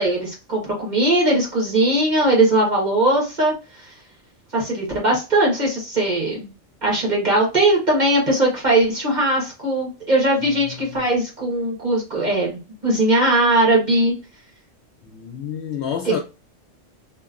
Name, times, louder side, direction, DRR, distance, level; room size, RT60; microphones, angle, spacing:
voice 1, 0.0-3.5 3.8-3.9 4.5-6.5 6.8-14.1 16.0-16.2, right 1 dB, 35° right, 1.3 m, -19 dB
voice 2, 10.7-11.0 15.0-16.2, left 8 dB, 65° left, 0.8 m, -29 dB
3.0 x 2.3 x 2.4 m
omnidirectional pair, 1.3 m